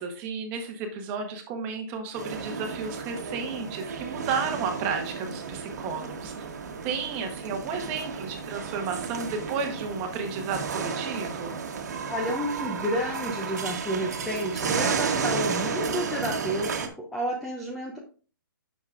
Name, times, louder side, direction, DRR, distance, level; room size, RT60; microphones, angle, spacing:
voice 1, 0.0-6.5 6.8-11.6, right 5 dB, 15° right, 5 dB, 0.9 m, -32 dB
sound 1, 2.1-16.9, right 5 dB, 50° right, 1.2 m, -32 dB
voice 2, 12.1-18.0, equal, ahead, -1 dB, 0.3 m, -30 dB
9.7 x 6.4 x 2.4 m, 0.39 s
hypercardioid pair, 170°, 12 cm